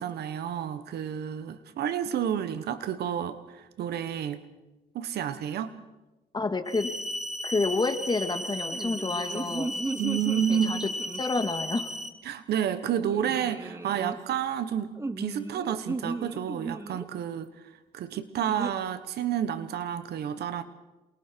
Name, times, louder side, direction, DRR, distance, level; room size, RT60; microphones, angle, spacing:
voice 1, 0.0-4.4 4.9-5.7 10.0-10.8 12.2-14.9 15.2-17.5 17.9-20.6, right 9 dB, 80° right, 12 dB, 1.3 m, -30 dB
voice 2, 6.3-6.9 7.4-9.7 10.5-11.9, left 3 dB, 25° left, 7 dB, 2.2 m, -29 dB
sound 1, 6.7-12.1, equal, ahead, 2.1 m, -35 dB
sound 2, 8.6-11.6 13.1-14.2 15.0-17.1 18.5-18.7, right 2 dB, 15° right, 1.1 m, -35 dB
28.0 x 22.0 x 4.6 m, 1.1 s
cardioid pair, 90°, 17 cm